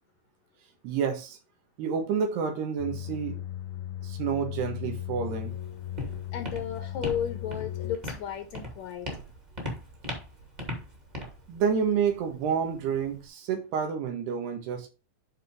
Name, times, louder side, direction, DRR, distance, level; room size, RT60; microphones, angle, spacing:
voice 1, 0.8-1.4 1.8-3.4 4.0-5.5 11.5-14.9, right 7 dB, 85° right, 3.7 m, -29 dB
sound 1, 2.8-8.0, left 12 dB, 90° left, 2.6 m, -37 dB
Walk footsteps, 5.3-13.3, left 1 dB, 15° right, 1.5 m, -40 dB
voice 2, 6.3-9.1, left 9 dB, 65° left, 1.9 m, -34 dB
11.5 x 4.3 x 3.6 m
omnidirectional pair, 4.5 m